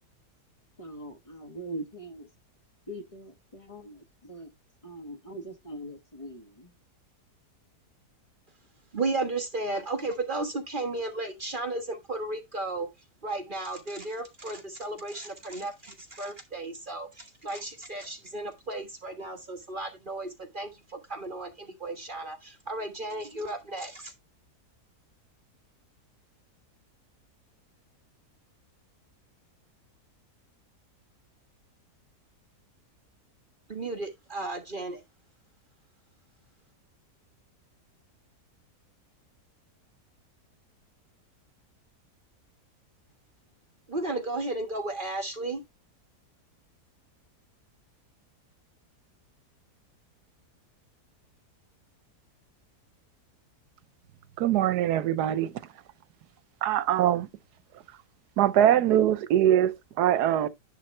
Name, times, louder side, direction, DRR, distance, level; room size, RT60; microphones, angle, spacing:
voice 1, 0.8-2.2 2.9-3.9 4.3-4.5 4.8-6.4, right 1 dB, 20° left, 1.4 m, -41 dB
voice 2, 8.9-12.9 13.2-24.1 33.7-35.0 43.9-45.6, right 2 dB, 35° right, 1.4 m, -34 dB
voice 3, 54.4-55.5 56.6-57.3 58.4-60.5, right 11 dB, 80° right, 1.3 m, -23 dB
10.0 x 3.5 x 4.3 m
omnidirectional pair, 1.7 m